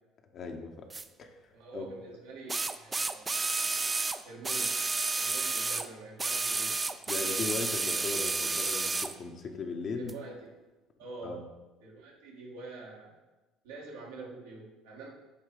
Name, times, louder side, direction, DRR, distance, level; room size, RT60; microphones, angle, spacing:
voice 1, 0.3-0.9 1.2-1.9 7.1-10.1 11.2-11.4, left 4 dB, 50° left, 4 dB, 1.0 m, -38 dB
sound 1, 0.9-1.0 2.5-5.9 6.2-9.1 10.1-10.2, right 3 dB, 25° right, 0.4 m, -31 dB
voice 2, 1.5-3.5 4.2-4.9 5.2-6.8 9.9-10.5 11.0-11.4 11.8-13.2 13.6-15.1, right 3 dB, 85° right, -4 dB, 1.8 m, -46 dB
8.7 x 3.3 x 4.9 m, 1.1 s
hypercardioid pair, 65°, 0 cm